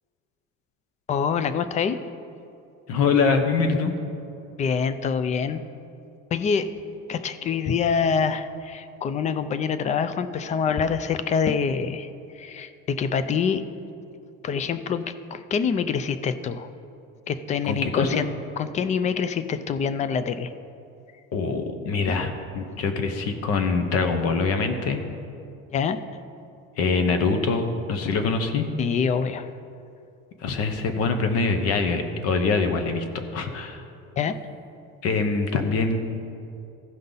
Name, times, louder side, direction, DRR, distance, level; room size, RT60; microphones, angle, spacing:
voice 1, 1.1-2.0 4.6-5.6 6.3-6.7 7.1-12.1 12.3-13.6 14.4-16.7 17.3-18.3 18.6-20.5 25.7-26.0 28.8-29.5 34.2-34.4, left 6 dB, 25° left, 12 dB, 0.3 m, -25 dB
voice 2, 2.9-4.0 17.6-18.1 21.3-25.0 26.8-28.7 30.4-33.0 33.3-33.8 35.0-36.0, left 4 dB, 55° left, 7 dB, 1.0 m, -24 dB
15.5 x 5.4 x 3.9 m, 2.6 s
cardioid pair, 145°, 29 cm